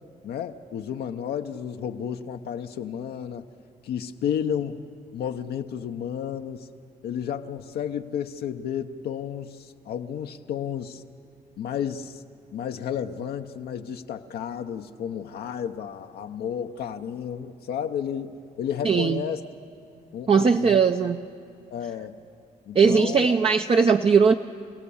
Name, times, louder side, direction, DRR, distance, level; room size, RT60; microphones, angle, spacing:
voice 1, 0.2-3.5 3.8-4.8 5.1-6.7 7.0-11.0 11.6-12.2 12.5-19.4 20.1-20.8 21.7-22.1 22.7-23.3, left 8 dB, 80° left, 5 dB, 0.8 m, -32 dB
voice 2, 18.8-19.2 20.3-21.2 22.7-24.3, right 5 dB, 35° right, 5 dB, 0.6 m, -19 dB
28.5 x 17.0 x 7.1 m, 2.4 s
cardioid pair, 70°, 16 cm